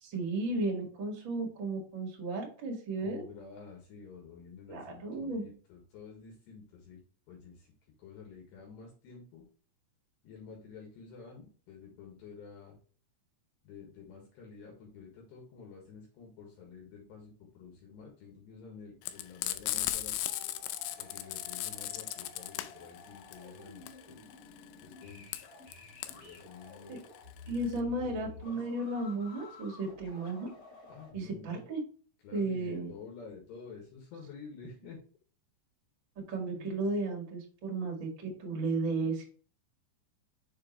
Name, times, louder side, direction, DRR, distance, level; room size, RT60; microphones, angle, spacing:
voice 1, 0.0-3.2 4.7-5.4 26.9-27.0 27.5-30.5 31.1-31.8 32.3-32.9 36.3-39.2, right 2 dB, 85° right, 0 dB, 1.0 m, -34 dB
voice 2, 3.0-7.0 7.3-7.7 8.0-9.5 10.2-12.8 13.6-20.2 21.0-24.2 24.8-25.8 26.1-27.0 28.0-28.6 30.9-31.6 32.2-35.0 36.5-36.8, left 5 dB, 70° left, -1 dB, 3.4 m, -50 dB
Frying (food), 19.0-27.8, left 14 dB, 85° left, 3.1 m, -37 dB
sound 1, 19.7-31.1, left 3 dB, 40° left, 3.1 m, -52 dB
6.8 x 4.9 x 3.0 m, 0.42 s
omnidirectional pair, 5.5 m